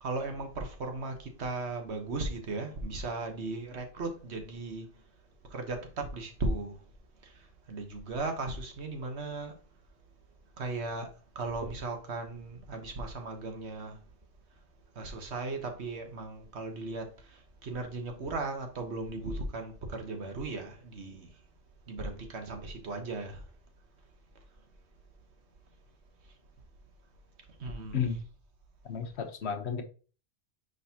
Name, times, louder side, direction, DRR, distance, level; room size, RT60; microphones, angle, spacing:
voice 1, 0.0-4.9 5.5-6.8 7.2-7.3 7.7-9.5 10.6-11.1 11.3-14.0 14.9-21.3 21.9-23.4 27.6-28.0, right 3 dB, 70° right, 1.5 m, -36 dB
voice 2, 28.9-29.8, left 7 dB, 75° left, 1.2 m, -32 dB
9.6 x 4.0 x 2.8 m
omnidirectional pair, 1.1 m